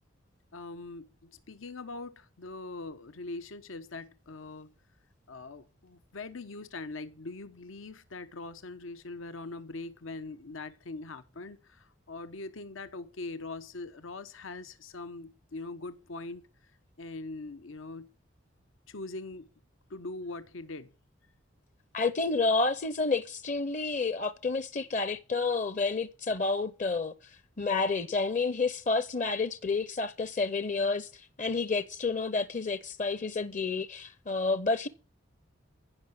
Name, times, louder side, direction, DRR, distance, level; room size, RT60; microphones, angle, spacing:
voice 1, 0.5-4.7 5.3-16.5 17.0-18.1 18.9-19.5 19.9-20.9, left 3 dB, 85° left, 0.9 m, -42 dB
voice 2, 21.9-27.1 27.6-34.9, left 3 dB, 40° left, 0.7 m, -30 dB
15.0 x 5.7 x 8.6 m
head